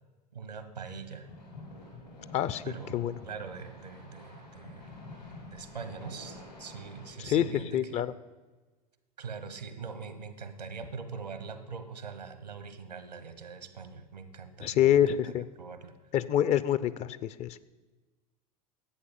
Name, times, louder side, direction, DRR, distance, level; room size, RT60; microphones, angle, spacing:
voice 1, 0.3-1.3 2.6-4.9 5.5-8.0 9.2-15.0 15.2-15.3 15.6-15.9, right 5 dB, 80° right, 11 dB, 1.2 m, -42 dB
sound 1, 1.2-7.1, left 2 dB, 90° left, 4.6 m, -48 dB
voice 2, 2.3-3.2 7.2-8.1 14.6-15.4 16.1-17.6, left 10 dB, 30° left, 16 dB, 0.5 m, -27 dB
11.5 x 8.4 x 6.9 m, 1.3 s
figure-of-eight pair, 80°, 21 cm